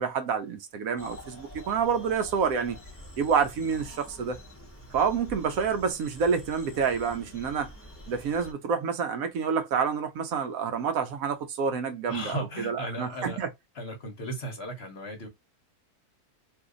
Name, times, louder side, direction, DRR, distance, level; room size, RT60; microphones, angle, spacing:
voice 1, 0.0-2.8 3.2-4.4 4.9-7.7 8.1-13.5, right 6 dB, 70° right, 1.0 m, -28 dB
sound 1, 1.0-8.5, left 1 dB, 10° left, 0.7 m, -46 dB
voice 2, 12.1-13.4 13.7-15.3, equal, 50° left, 1.0 m, -36 dB
2.7 x 2.6 x 3.7 m
omnidirectional pair, 1.6 m